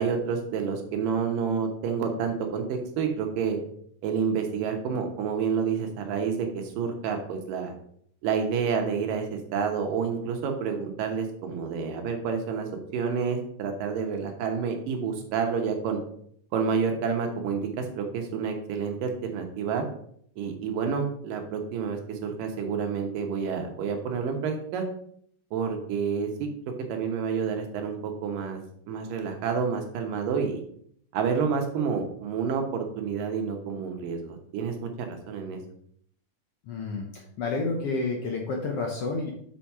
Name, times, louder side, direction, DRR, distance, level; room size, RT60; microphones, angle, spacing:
voice 1, 0.0-3.6 4.0-7.7 8.2-16.0 16.5-19.9 20.4-24.8 25.5-26.5 26.9-28.6 28.9-30.6 31.1-35.6, right 6 dB, 90° right, 4 dB, 2.8 m, -29 dB
voice 2, 36.6-39.3, left 3 dB, 65° left, 0 dB, 1.5 m, -30 dB
6.3 x 5.8 x 4.7 m, 0.66 s
omnidirectional pair, 3.7 m